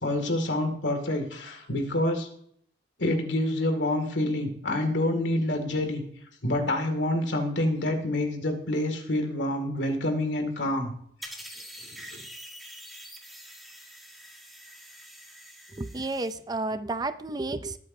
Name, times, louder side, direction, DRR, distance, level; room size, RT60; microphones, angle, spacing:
voice 1, 0.0-2.3 3.0-6.0 6.4-10.9 12.0-12.2, left 1 dB, 75° left, 5 dB, 2.3 m, -27 dB
sound 1, 11.2-16.4, equal, ahead, 1.9 m, -45 dB
voice 2, 15.7-17.8, right 2 dB, 20° right, 12 dB, 0.5 m, -31 dB
20.5 x 8.4 x 2.7 m, 0.64 s
head